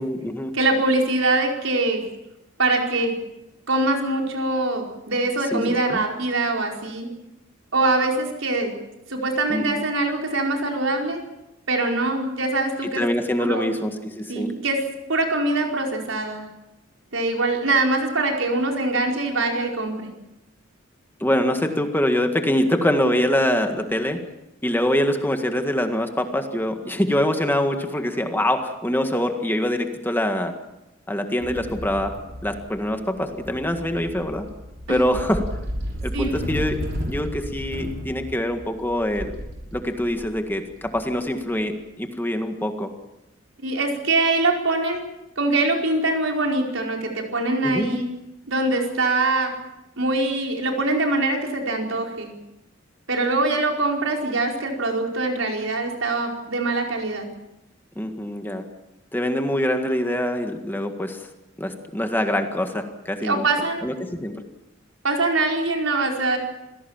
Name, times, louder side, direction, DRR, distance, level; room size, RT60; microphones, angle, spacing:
voice 1, 0.0-0.5 5.5-6.0 9.5-9.8 12.8-14.5 21.2-24.2 24.6-30.6 31.1-34.5 34.9-35.5 36.0-39.4 39.7-42.9 47.6-48.0 58.0-58.7 59.1-61.3 61.6-63.5 63.8-64.4, left 1 dB, 10° left, 5 dB, 1.8 m, -24 dB
voice 2, 0.5-2.0 2.6-3.1 3.7-7.1 7.7-8.7 9.1-11.2 11.7-13.0 13.4-13.8 14.3-14.8 15.1-16.5 17.1-20.1 34.9-35.0 36.1-36.4 43.6-45.0 45.4-48.1 48.5-49.5 50.0-52.3 53.1-57.3 63.2-63.8 65.0-66.4, right 2 dB, 80° right, 1 dB, 4.8 m, -23 dB
sound 1, 31.4-41.6, equal, 55° right, 6.1 m, -33 dB
26.5 x 17.5 x 7.4 m, 0.93 s
head